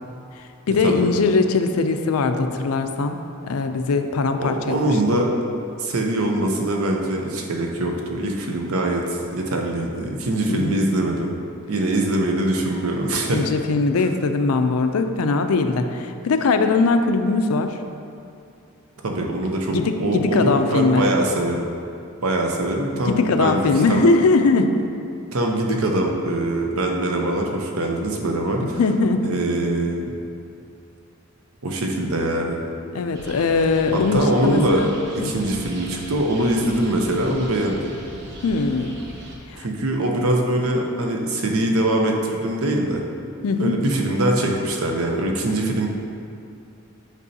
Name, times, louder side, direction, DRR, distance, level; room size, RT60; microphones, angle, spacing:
voice 1, 0.7-3.2 3.4-4.9 10.5-10.8 13.3-17.8 19.7-21.1 22.9-24.9 25.7-25.8 28.6-29.4 32.9-34.9 35.2-35.3 38.4-39.0 39.5-39.7 43.4-43.8, left 3 dB, 80° left, 7 dB, 0.4 m, -20 dB
voice 2, 4.4-5.3 5.8-11.4 11.7-13.4 19.0-21.7 22.2-24.1 25.3-28.8 29.2-30.2 31.6-32.6 33.9-34.9 35.1-37.9 39.6-43.0 43.6-45.9, right 1 dB, 80° right, 1 dB, 0.7 m, -23 dB
sound 1, 33.1-39.4, right 1 dB, 50° right, 0.9 m, -39 dB
8.2 x 5.4 x 2.8 m, 2.5 s
head